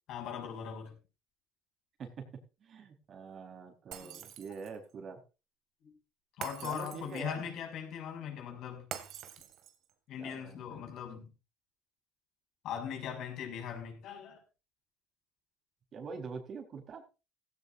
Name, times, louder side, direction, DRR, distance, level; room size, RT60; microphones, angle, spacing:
voice 1, 0.1-1.0 4.0-4.2 5.8-5.9 6.4-8.9 10.1-11.3 12.6-14.4, left 8 dB, 60° left, 6.4 m, -40 dB
voice 2, 2.6-5.2 6.6-7.5 10.2-10.9 15.9-17.0, right 5 dB, 45° right, 4.2 m, -44 dB
Shatter, 3.9-4.9 6.4-7.4 8.9-9.9, right 10 dB, 60° right, 2.3 m, -45 dB
16.5 x 15.0 x 2.6 m
supercardioid pair, 100°, 0 cm